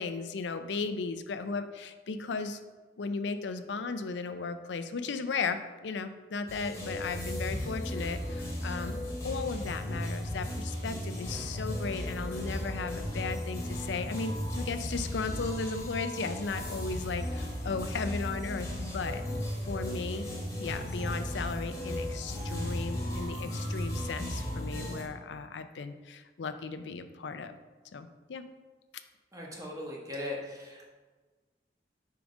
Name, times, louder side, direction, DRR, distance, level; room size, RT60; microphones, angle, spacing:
voice 1, 0.0-2.6 3.0-9.0 9.2-19.2 19.6-20.3 20.6-27.6 27.9-28.5, left 4 dB, 70° left, 10 dB, 0.5 m, -36 dB
sound 1, 6.5-25.0, equal, 15° left, 1.3 m, -35 dB
voice 2, 29.3-30.9, left 1 dB, 20° right, -3 dB, 1.2 m, -39 dB
5.0 x 4.6 x 5.2 m, 1.3 s
head